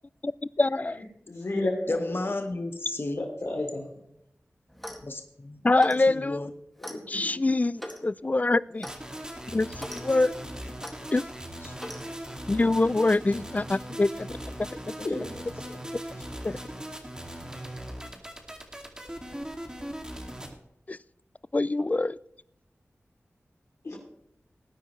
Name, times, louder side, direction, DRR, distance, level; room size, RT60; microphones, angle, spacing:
voice 1, 0.6-1.0 5.6-6.5 7.1-8.9 9.5-10.3 11.1-11.2 12.5-14.3 16.4-16.6 20.9-21.0 21.5-22.2, left 2 dB, 30° left, 20 dB, 0.3 m, -24 dB
voice 2, 1.3-2.1 3.4-3.9 6.8-7.6 9.9-10.0 15.0-15.8 23.8-24.0, left 2 dB, 80° left, -4 dB, 2.9 m, -33 dB
voice 3, 1.9-3.3 5.0-5.6 6.0-6.5 11.6-11.8 15.6-15.7, left 2 dB, 50° left, 6 dB, 1.2 m, -33 dB
Clock, 4.7-5.1 5.8-6.1 6.8-7.0 7.8-8.0 8.8-9.0 9.7-10.0 10.8-11.0 11.8-12.0, equal, ahead, 2.1 m, -39 dB
sound 1, 8.8-20.5, right 1 dB, 15° right, 2.3 m, -39 dB
19.0 x 9.6 x 3.2 m, 0.78 s
wide cardioid pair, 50°, 5 cm